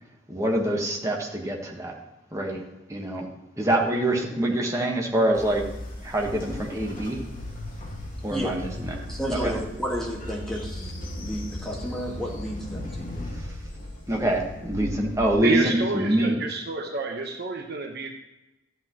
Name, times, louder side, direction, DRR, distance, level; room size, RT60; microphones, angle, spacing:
voice 1, 0.3-1.9 2.3-2.6 2.9-3.3 3.6-5.6 6.0-7.2 8.2-8.7 9.3-9.5 14.1-16.4, right 1 dB, 15° right, -1 dB, 1.4 m, -25 dB
Train, 5.3-15.3, left 1 dB, 45° left, 2.6 m, -36 dB
voice 2, 9.1-10.9 11.2-13.3, equal, ahead, -2 dB, 1.7 m, -32 dB
voice 3, 15.4-18.1, right 4 dB, 55° right, 3 dB, 1.1 m, -28 dB
12.5 x 8.3 x 3.1 m, 1.0 s
head